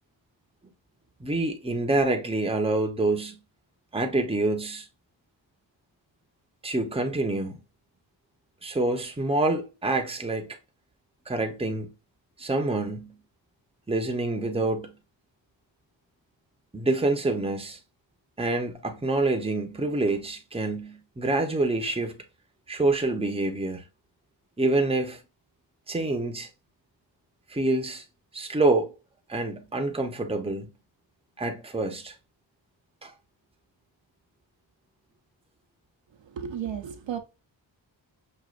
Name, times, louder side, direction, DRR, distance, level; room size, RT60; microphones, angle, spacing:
voice 1, 1.2-3.4 3.9-4.9 6.6-7.6 8.6-10.6 11.3-11.9 12.4-13.1 13.9-14.9 16.7-17.8 18.4-22.2 22.7-23.8 24.6-25.2 25.9-26.5 27.5-28.0 28.3-28.9 29.3-30.7 31.4-32.1 33.0-33.1, right 2 dB, 15° right, 0.7 m, -27 dB
voice 2, 36.2-37.2, right 8 dB, 70° right, 0.7 m, -33 dB
6.2 x 2.4 x 2.4 m
wide cardioid pair, 90°, 46 cm